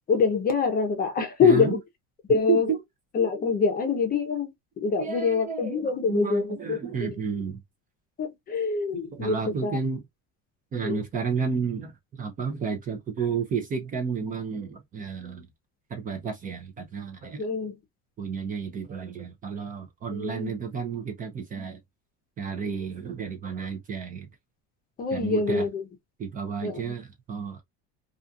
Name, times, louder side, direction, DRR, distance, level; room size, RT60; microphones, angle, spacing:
voice 1, 0.1-1.8 2.3-2.7 3.1-4.5 4.8-6.8 8.2-9.8 10.8-11.0 17.4-17.7 20.1-20.5 25.0-25.8 26.6-26.9, left 5 dB, 25° left, 0.6 m, -25 dB
voice 2, 1.4-1.8 2.3-2.8 5.0-7.6 8.9-10.0 10.7-15.5 15.9-17.4 18.2-21.8 22.4-24.3 25.1-25.6 26.2-27.6, right 6 dB, 25° right, 0.5 m, -31 dB
2.4 x 2.4 x 2.5 m
cardioid pair, 140°, 33 cm